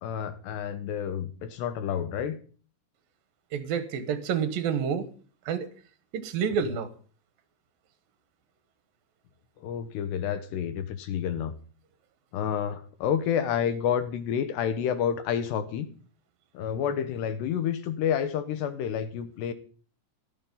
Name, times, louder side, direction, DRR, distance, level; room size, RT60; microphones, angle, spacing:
voice 1, 0.0-2.4 9.6-11.5 12.3-15.9 16.5-19.5, left 8 dB, 75° left, 10 dB, 2.7 m, -29 dB
voice 2, 3.5-5.1 5.5-5.7 6.1-6.9, right 7 dB, 70° right, 10 dB, 2.3 m, -28 dB
17.0 x 12.5 x 5.5 m, 0.42 s
omnidirectional pair, 5.8 m